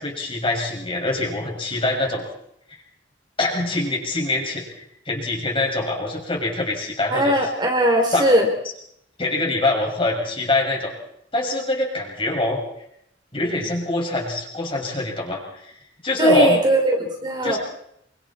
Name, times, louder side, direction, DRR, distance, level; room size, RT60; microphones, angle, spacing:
voice 1, 0.0-2.2 3.4-7.4 8.1-8.3 9.2-10.9 11.3-12.6 13.3-15.8 16.0-16.6 17.4-17.6, left 2 dB, 30° left, -1 dB, 6.6 m, -24 dB
voice 2, 7.1-8.5 16.2-17.6, right 1 dB, 25° right, 2 dB, 3.7 m, -19 dB
28.5 x 24.5 x 4.4 m, 0.74 s
head